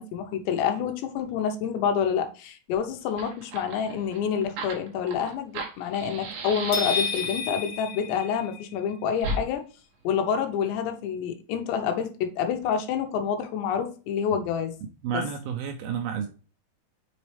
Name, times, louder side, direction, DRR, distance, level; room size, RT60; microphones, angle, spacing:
voice 1, 0.0-9.6 10.0-14.7, left 7 dB, 85° left, 3.1 m, -28 dB
Fire, 2.7-2.8 3.0-7.6 9.2-9.4, right 2 dB, 60° right, 2.2 m, -35 dB
sound 1, 6.7-8.9, left 5 dB, 45° left, 2.4 m, -31 dB
voice 2, 15.0-16.3, right 7 dB, 80° right, 2.3 m, -30 dB
6.9 x 4.2 x 3.2 m
omnidirectional pair, 4.9 m